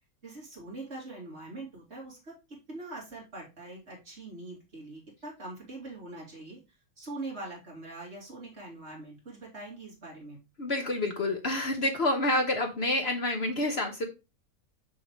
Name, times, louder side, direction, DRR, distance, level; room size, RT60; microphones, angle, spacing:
voice 1, 0.2-2.3 2.7-6.6 7.0-10.4, right 2 dB, 45° right, -3 dB, 2.9 m, -43 dB
voice 2, 10.6-14.1, left 1 dB, 50° left, 4 dB, 1.1 m, -28 dB
6.7 x 6.4 x 3.0 m, 0.28 s
omnidirectional pair, 1.6 m